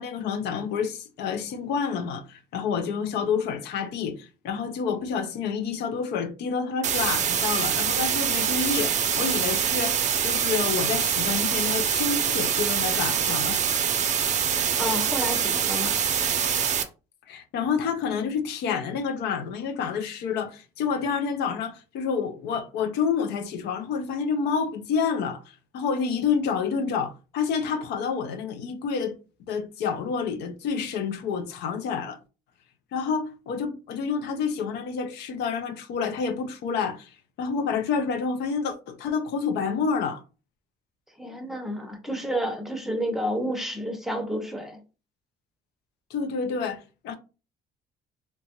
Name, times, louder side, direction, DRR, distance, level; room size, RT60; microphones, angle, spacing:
voice 1, 0.0-13.6 17.3-29.2 29.5-32.2 32.9-40.2 46.1-47.2, left 6 dB, 80° left, 0.5 m, -28 dB
sound 1, 6.8-16.8, right 8 dB, 45° right, 0.5 m, -25 dB
voice 2, 14.8-16.0 41.1-44.8, equal, ahead, 0.6 m, -30 dB
2.9 x 2.2 x 2.8 m
cardioid pair, 110°, 17 cm